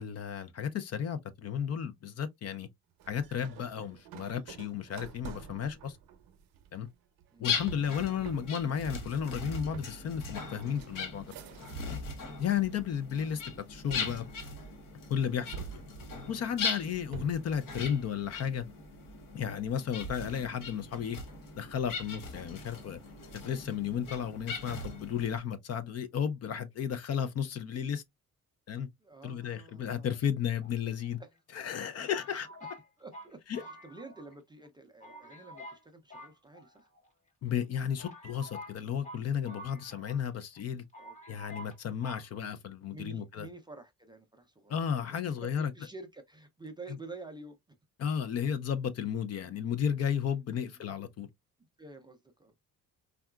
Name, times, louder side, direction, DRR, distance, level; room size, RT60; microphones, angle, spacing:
voice 1, 0.0-2.7 3.1-6.0 6.7-6.9 7.4-11.3 12.4-13.4 13.7-14.2 15.1-15.6 16.3-18.6 19.3-21.2 21.5-23.0 23.3-28.0 28.7-28.9 29.2-31.2 31.5-32.5 33.5-33.6 37.4-40.8 41.3-43.5 44.7-45.7 48.0-51.3, left 8 dB, 45° left, 0.4 m, -33 dB
sound 1, 3.0-12.2 12.5-13.2 13.9-15.0 15.5-17.6, right 8 dB, 75° right, 0.6 m, -48 dB
sound 2, 7.4-25.4, left 4 dB, 65° left, 1.0 m, -40 dB
voice 2, 29.0-30.2 31.2-31.3 32.3-32.7 33.0-36.9 41.0-41.7 42.9-44.9 45.4-47.6 50.6-50.9 51.8-52.5, right 3 dB, 15° right, 0.3 m, -49 dB
sound 3, 30.6-31.4 32.1-34.4 34.6-34.7 35.0-35.8 36.1-37.1 37.6-37.7 38.0-40.3 40.6-40.7 40.9-41.8 42.0-42.3, left 1 dB, 20° left, 1.0 m, -48 dB
3.7 x 2.3 x 2.2 m
cardioid pair, 155°, 34 cm